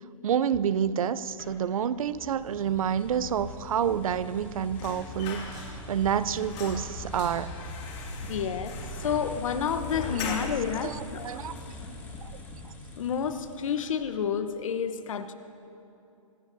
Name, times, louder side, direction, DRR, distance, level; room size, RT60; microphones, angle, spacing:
voice 1, 0.2-7.5 10.2-10.5 10.8-11.5 12.2-12.3 12.6-12.7, right 8 dB, 80° right, 17 dB, 0.5 m, -29 dB
sound 1, 1.4-14.1, left 1 dB, 10° left, 2.1 m, -42 dB
sound 2, 4.7-6.0 6.3-10.8 11.2-11.3 11.6-12.4 12.7-12.9 13.2-13.9 14.2-14.4, left 4 dB, 30° left, 2.4 m, -41 dB
voice 2, 8.2-8.7 9.0-11.3 13.0-15.3, left 7 dB, 70° left, 10 dB, 1.0 m, -30 dB
25.5 x 12.5 x 2.7 m, 2.7 s
hypercardioid pair, 145°, 18 cm